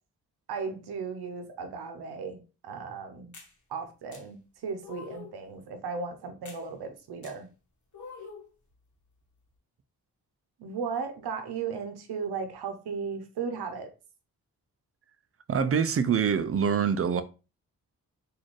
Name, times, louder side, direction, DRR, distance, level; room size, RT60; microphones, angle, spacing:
voice 1, 0.5-3.3 3.7-7.5 10.6-13.9, right 5 dB, 80° right, 0.8 m, -36 dB
sound 1, 3.3-3.5 4.1-4.2 4.8-5.4 6.5-6.6 7.2-7.3 7.9-8.5, left 4 dB, 50° left, 1.2 m, -45 dB
voice 2, 15.5-17.2, right 7 dB, 35° right, 0.5 m, -25 dB
3.9 x 2.6 x 3.1 m
cardioid pair, 50°, 38 cm